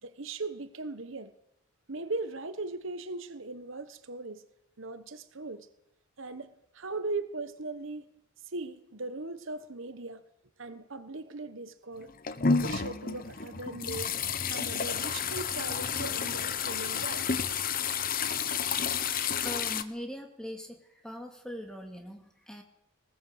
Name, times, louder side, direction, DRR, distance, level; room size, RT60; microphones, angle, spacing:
voice 1, 0.0-1.3 1.9-4.4 4.8-5.7 6.2-6.5 6.7-8.1 8.4-10.2 10.6-12.1 12.5-14.1 14.5-17.6, right 3 dB, 60° right, 1.1 m, -39 dB
sound 1, 12.0-19.8, left 6 dB, 40° left, 1.0 m, -31 dB
voice 2, 19.4-22.6, equal, 5° left, 2.4 m, -41 dB
20.0 x 18.5 x 8.0 m
head